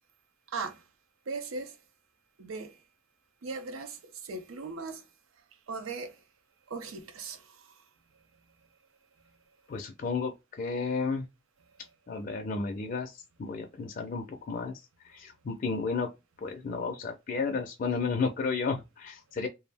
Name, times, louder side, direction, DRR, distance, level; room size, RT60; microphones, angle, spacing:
voice 1, 0.5-0.8 1.3-1.8 2.4-2.8 3.4-5.0 5.7-6.2 6.7-7.8, right 4 dB, 90° right, 0.5 m, -38 dB
voice 2, 9.7-11.3 12.1-14.7 15.0-16.1 16.4-19.5, left 4 dB, 45° left, 0.4 m, -32 dB
2.2 x 2.0 x 3.3 m
head